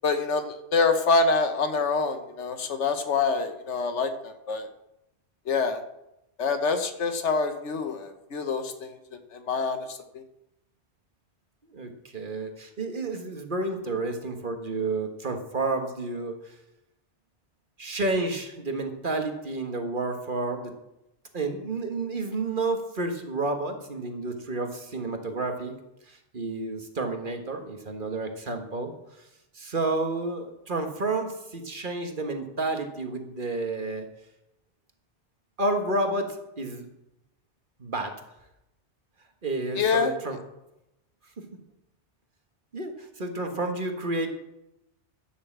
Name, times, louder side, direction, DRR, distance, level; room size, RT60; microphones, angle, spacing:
voice 1, 0.0-4.7 5.5-5.8 6.4-9.0 9.3-10.2 39.8-40.1, left 4 dB, 85° left, 9 dB, 1.4 m, -26 dB
voice 2, 11.7-16.6 17.8-20.7 21.3-25.7 26.1-29.2 29.5-34.1 35.6-36.8 37.8-38.1 39.4-40.4 42.7-44.3, right 2 dB, 45° right, 5 dB, 1.6 m, -30 dB
11.5 x 6.7 x 7.3 m, 0.88 s
omnidirectional pair, 1.2 m